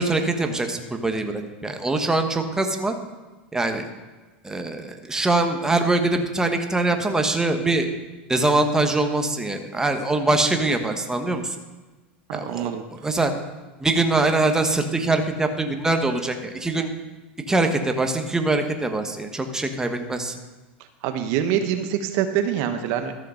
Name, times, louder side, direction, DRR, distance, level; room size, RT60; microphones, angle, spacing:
voice 1, 0.0-2.9 3.5-3.9 4.4-7.9 8.3-11.5 12.3-13.3 13.8-16.9 17.5-20.4, right 2 dB, 10° right, 5 dB, 1.3 m, -23 dB
voice 2, 12.3-12.8 21.0-23.2, right 9 dB, 60° right, 8 dB, 1.0 m, -25 dB
13.5 x 5.7 x 6.4 m, 1.2 s
hypercardioid pair, 100°, 6 cm